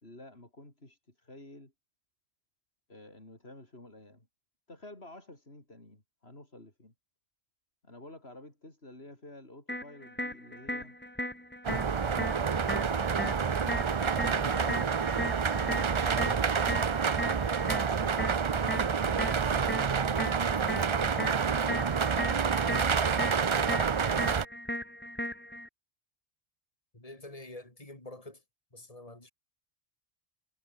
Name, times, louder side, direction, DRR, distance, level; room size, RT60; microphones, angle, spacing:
voice 1, 0.0-1.7 2.9-4.3 4.7-6.9 7.8-10.9 11.8-16.5 17.1-19.9, left 1 dB, 70° left, 6.0 m, -51 dB
sound 1, 9.7-25.7, left 1 dB, 10° left, 2.6 m, -38 dB
sound 2, 11.6-24.4, right 6 dB, 35° right, 0.5 m, -28 dB
voice 2, 26.9-28.4 28.7-29.3, left 2 dB, 35° left, 4.4 m, -47 dB
omnidirectional pair, 1.1 m